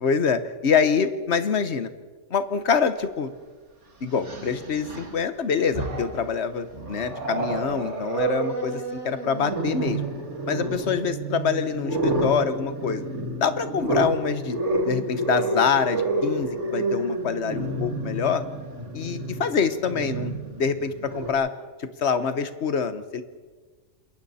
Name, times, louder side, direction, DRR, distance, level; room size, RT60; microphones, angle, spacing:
voice 1, 0.0-1.9 2.3-3.3 4.0-10.0 10.5-13.0 13.4-18.4 18.9-21.5 22.0-23.2, left 6 dB, 55° left, 11 dB, 1.4 m, -25 dB
Growling, 3.1-3.2 4.1-5.2 5.6-6.3 6.7-21.3, right 2 dB, 60° right, 3.0 m, -29 dB
27.5 x 22.0 x 4.2 m, 1.4 s
omnidirectional pair, 1.4 m